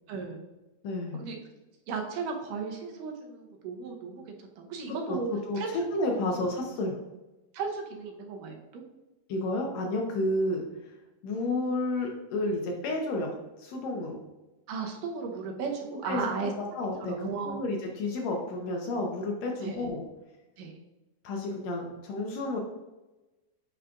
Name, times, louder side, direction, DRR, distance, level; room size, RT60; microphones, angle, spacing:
voice 1, 0.1-0.4 1.1-1.4 1.9-5.3 5.6-5.7 7.5-8.8 14.7-16.5 17.0-17.6 19.6-19.8 20.6-20.7, right 5 dB, 90° right, 2 dB, 2.5 m, -35 dB
voice 2, 0.8-1.2 4.9-7.0 9.3-10.9 11.2-13.3 13.6-14.2 16.0-20.0 21.2-22.6, left 2 dB, 70° left, 1 dB, 1.7 m, -31 dB
9.4 x 4.9 x 2.4 m, 1.1 s
omnidirectional pair, 3.7 m